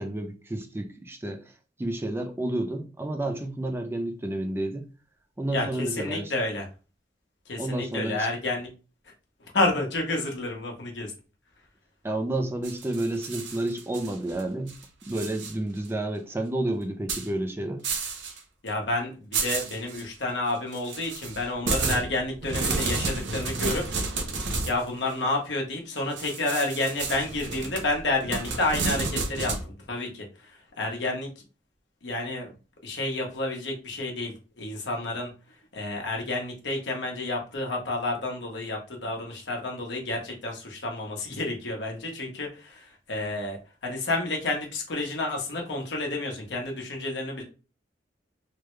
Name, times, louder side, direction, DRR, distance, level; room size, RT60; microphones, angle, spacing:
voice 1, 0.0-1.5 1.8-4.8 5.4-6.3 7.6-8.3 12.0-14.7 15.1-17.8, right 1 dB, 15° right, 0.4 m, -30 dB
voice 2, 5.5-6.7 7.5-8.7 9.5-11.1 18.6-23.8 24.7-31.3 32.0-32.5 32.8-35.3 35.7-47.4, left 2 dB, 75° left, 1.1 m, -30 dB
sound 1, 12.6-14.4 14.7-15.5 15.9-16.0 17.1-17.3 17.8-18.4 18.7-18.8 19.3-20.0 20.7-24.8 26.2-29.6, right 3 dB, 75° right, 0.6 m, -31 dB
3.3 x 2.2 x 3.1 m
head